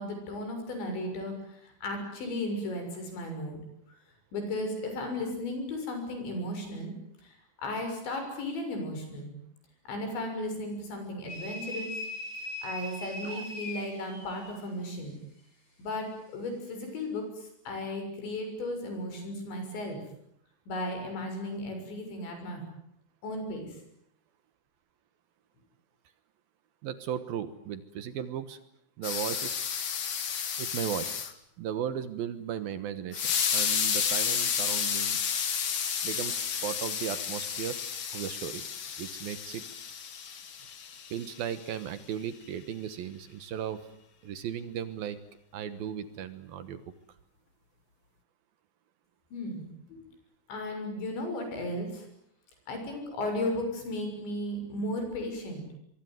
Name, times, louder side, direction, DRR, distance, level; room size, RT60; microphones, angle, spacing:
voice 1, 0.0-3.6 4.3-6.9 7.2-9.3 9.9-12.0 12.6-15.1 15.8-16.1 16.3-20.0 20.7-22.6 23.2-23.8 49.3-50.0 50.5-52.1 52.7-55.7, left 1 dB, 85° left, 5 dB, 9.0 m, -35 dB
sound 1, 11.3-14.6, left 1 dB, 40° left, 7.5 m, -39 dB
voice 2, 26.8-28.6 29.0-29.6 30.6-31.1 31.6-35.2 36.0-37.8 38.1-38.7 39.0-39.6 41.1-43.9 44.2-45.2 45.5-46.8, right 9 dB, 65° right, 12 dB, 2.8 m, -36 dB
sound 2, 29.0-31.3 33.1-41.5, left 7 dB, 55° left, 1.5 m, -31 dB
24.0 x 24.0 x 9.5 m, 0.73 s
omnidirectional pair, 5.0 m